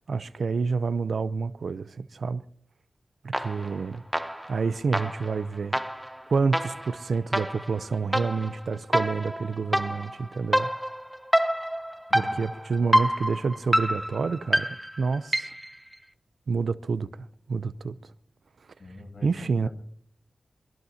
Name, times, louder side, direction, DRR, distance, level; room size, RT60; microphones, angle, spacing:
voice 1, 0.0-2.4 3.2-4.0 4.5-5.8 6.3-10.7 12.1-15.5 16.5-18.0 19.2-19.7, right 4 dB, 80° right, 0.6 m, -28 dB
sound 1, 3.3-3.8 4.1-15.7, equal, 5° right, 0.8 m, -28 dB
voice 2, 18.8-19.7, left 2 dB, 60° left, 7.6 m, -45 dB
23.0 x 21.0 x 2.8 m
wide cardioid pair, 65°, 0 cm